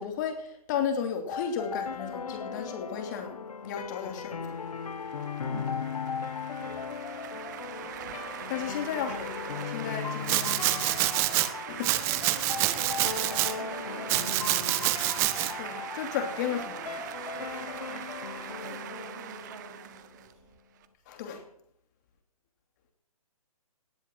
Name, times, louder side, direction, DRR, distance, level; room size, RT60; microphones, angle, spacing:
voice 1, 0.0-4.6 7.8-7.9 8.5-11.9 15.6-17.1 21.1-21.4, left 8 dB, 30° left, 5 dB, 3.0 m, -34 dB
sound 1, 1.3-20.3, left 6 dB, 75° left, 1.4 m, -38 dB
sound 2, 4.2-20.9, right 11 dB, 30° right, 1.0 m, -42 dB
voice 2, 5.4-5.9 6.6-6.8 12.6-13.0 13.5-15.0 17.3-20.3, right 4 dB, 55° right, -7 dB, 7.7 m, -48 dB
Domestic sounds home sounds, 10.3-11.5 11.8-13.5 14.1-15.5, right 17 dB, 15° right, 0.6 m, -27 dB
18.5 x 7.3 x 9.0 m, 0.67 s
hypercardioid pair, 160°, 19 cm